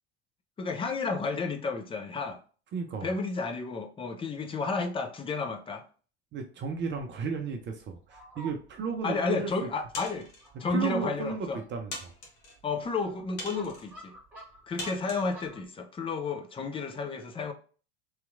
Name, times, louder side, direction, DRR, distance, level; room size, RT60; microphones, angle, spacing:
voice 1, 0.6-2.4 3.0-5.8 9.0-10.3 10.6-11.6 12.6-14.1 14.7-17.5, left 4 dB, 15° left, 0.5 m, -32 dB
voice 2, 2.7-3.1 6.3-9.7 10.7-12.1, right 5 dB, 35° right, 0.6 m, -34 dB
Fowl, 6.6-15.7, right 2 dB, 5° right, 1.7 m, -52 dB
sound 1, 9.9-10.5 11.2-11.3 11.9-12.6 13.4-13.9 14.8-15.3, left 2 dB, 60° left, 1.2 m, -41 dB
3.2 x 2.9 x 2.4 m
hypercardioid pair, 75°, 34 cm